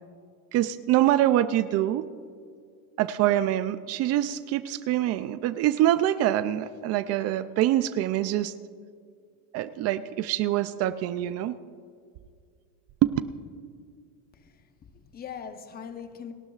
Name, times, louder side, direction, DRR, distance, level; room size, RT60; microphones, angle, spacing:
voice 1, 0.5-2.1 3.0-8.5 9.5-11.6 13.0-13.1, right 13 dB, 35° right, 0.4 m, -25 dB
voice 2, 14.3-16.3, left 7 dB, 20° left, 0.9 m, -41 dB
29.5 x 12.0 x 2.4 m
supercardioid pair, 135°, 44 cm